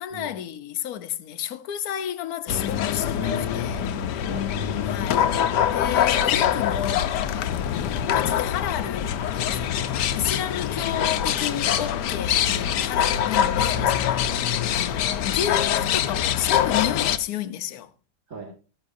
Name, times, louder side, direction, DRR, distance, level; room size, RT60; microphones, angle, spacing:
voice 1, 0.0-3.9 4.8-5.3 5.7-17.9, left 10 dB, 70° left, 1.2 m, -32 dB
sound 1, 2.5-17.2, left 9 dB, 85° left, 1.3 m, -24 dB
voice 2, 3.2-4.9 11.5-11.8 13.8-14.0 18.3-18.5, right 3 dB, 50° right, 2.4 m, -39 dB
14.0 x 13.5 x 2.6 m
omnidirectional pair, 1.8 m